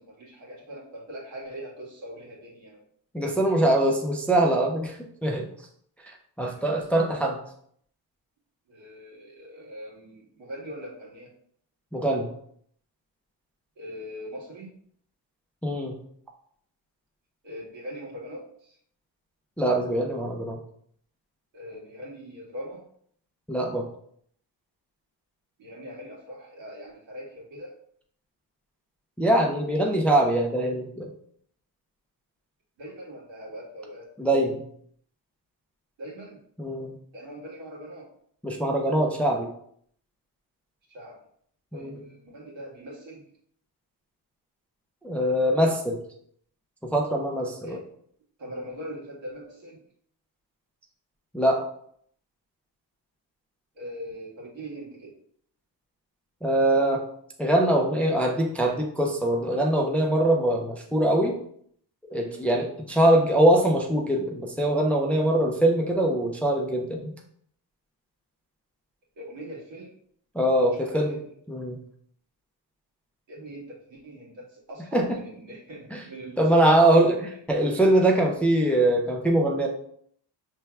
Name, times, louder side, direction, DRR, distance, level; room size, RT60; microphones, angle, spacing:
voice 1, 0.0-2.8 3.2-3.7 6.5-6.7 8.7-11.3 13.8-14.7 17.4-18.8 21.5-22.8 25.6-27.7 32.8-34.1 36.0-36.4 37.1-38.1 40.9-41.2 41.7-43.2 47.6-47.8 48.4-49.8 53.7-55.1 62.2-62.5 69.2-70.0 70.7-71.2 73.3-76.8, equal, 80° right, -4 dB, 1.8 m, -41 dB
voice 2, 3.1-5.5 6.0-7.4 11.9-12.3 15.6-16.0 19.6-20.6 23.5-23.9 29.2-31.1 34.2-34.6 36.6-36.9 38.4-39.5 41.7-42.0 45.0-46.0 46.8-47.8 51.3-51.7 56.4-57.0 57.4-61.3 62.1-67.1 70.3-71.2 71.5-71.8 74.9-75.2 75.9-76.0 76.4-79.7, right 1 dB, 5° left, 0 dB, 0.4 m, -23 dB
5.5 x 3.2 x 2.3 m, 0.65 s
cardioid pair, 115°, 44 cm